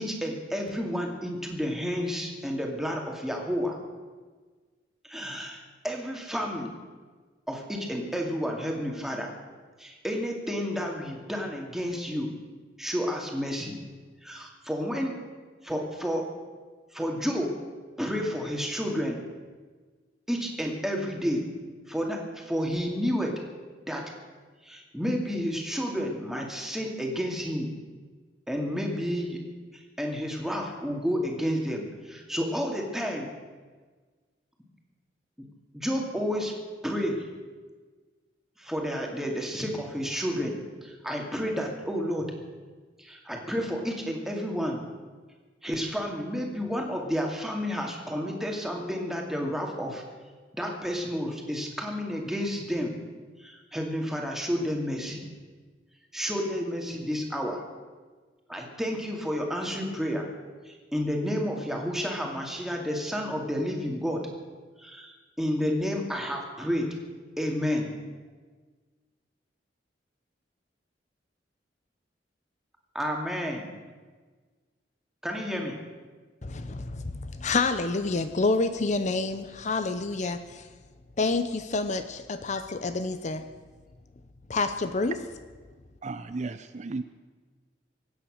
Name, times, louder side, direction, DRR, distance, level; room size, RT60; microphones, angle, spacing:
voice 1, 0.0-3.8 5.0-6.7 7.5-9.3 9.8-12.3 12.8-13.8 14.2-15.2 15.6-16.3 16.9-17.5 18.0-19.2 20.3-21.4 21.9-23.4 23.9-24.1 24.6-27.7 28.5-29.4 29.7-33.3 35.4-35.5 35.7-36.6 36.8-37.3 38.6-42.3 43.0-44.8 45.6-50.0 50.5-52.9 53.4-55.2 56.1-57.6 58.5-60.2 60.6-64.2 64.8-67.0 67.4-67.9 72.9-73.7 75.2-75.8, equal, ahead, 2.3 m, -31 dB
voice 2, 76.4-80.7 81.2-83.4 84.5-85.2, left 3 dB, 40° left, 0.7 m, -28 dB
voice 3, 86.0-87.0, right 3 dB, 40° right, 0.5 m, -34 dB
23.5 x 9.1 x 6.5 m
head